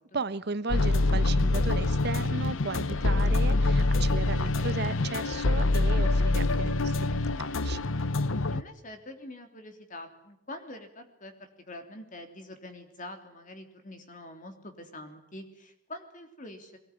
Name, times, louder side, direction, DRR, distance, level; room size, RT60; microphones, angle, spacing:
voice 1, 0.1-7.8, right 3 dB, 55° right, 14 dB, 1.0 m, -35 dB
sound 1, 0.7-8.6, left 2 dB, 85° left, 0.9 m, -25 dB
voice 2, 8.5-16.8, left 1 dB, 40° left, 6 dB, 3.3 m, -45 dB
22.0 x 18.5 x 9.9 m, 0.81 s
head